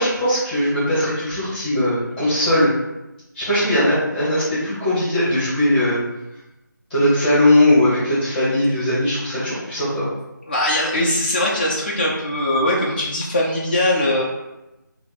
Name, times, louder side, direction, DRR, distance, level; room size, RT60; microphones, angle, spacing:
voice 1, 0.0-2.7 3.3-6.0 6.9-10.1, left 1 dB, 5° left, -13 dB, 1.1 m, -19 dB
voice 2, 10.5-14.2, left 1 dB, 30° left, -4 dB, 0.4 m, -21 dB
3.1 x 2.7 x 3.9 m, 0.98 s
figure-of-eight pair, 160°, 11 cm